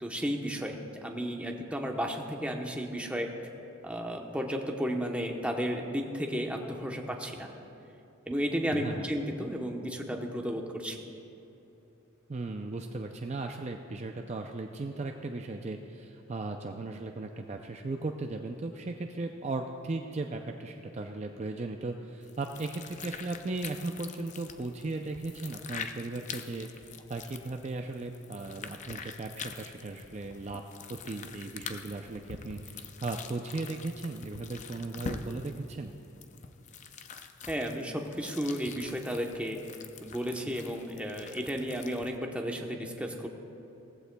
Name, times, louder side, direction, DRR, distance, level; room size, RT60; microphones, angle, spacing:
voice 1, 0.0-3.3 3.8-7.5 8.3-11.0 37.5-39.6 40.0-43.3, equal, 5° right, 1 dB, 0.9 m, -33 dB
voice 2, 8.6-9.1 12.3-26.7 27.1-30.6 30.9-35.9, right 3 dB, 35° right, 4 dB, 0.4 m, -37 dB
sound 1, 22.2-42.2, left 5 dB, 35° left, 0.5 m, -45 dB
18.0 x 15.0 x 2.3 m, 2.9 s
head